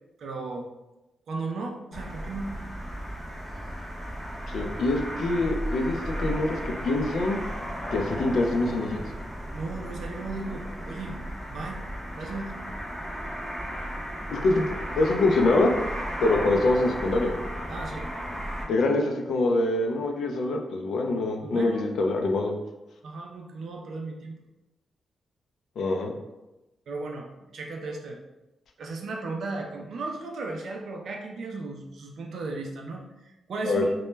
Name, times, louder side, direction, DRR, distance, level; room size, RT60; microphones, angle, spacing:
voice 1, 0.2-0.7 1.3-2.5 9.5-11.2 11.5-11.8 12.1-12.5 17.7-18.4 21.4-21.9 23.0-24.4 26.9-28.2 28.8-33.9, right 3 dB, 65° right, 1 dB, 0.3 m, -35 dB
sound 1, 1.9-18.6, equal, 5° left, 0.6 m, -35 dB
voice 2, 4.5-7.4 7.9-9.0 14.3-15.7 16.2-17.3 18.6-22.5 25.8-26.1 33.7-33.8, left 2 dB, 70° left, 2 dB, 0.3 m, -25 dB
2.1 x 2.0 x 3.1 m, 1.0 s
wide cardioid pair, 130°, 0 cm